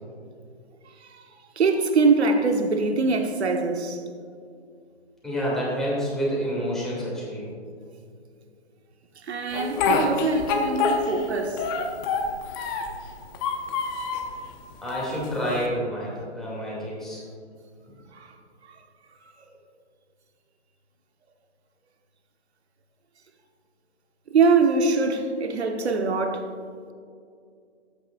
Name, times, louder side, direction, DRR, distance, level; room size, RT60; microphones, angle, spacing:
voice 1, 1.6-4.0 9.3-11.7 24.3-26.5, right 4 dB, 70° right, 1.2 m, -23 dB
voice 2, 5.2-7.5 14.8-17.2, equal, ahead, 2.6 m, -28 dB
Speech, 9.5-11.3 11.6-13.0 13.3-14.3 14.9-15.7, left 4 dB, 20° left, 0.7 m, -26 dB
13.0 x 9.0 x 2.5 m
hypercardioid pair, 140°, 34 cm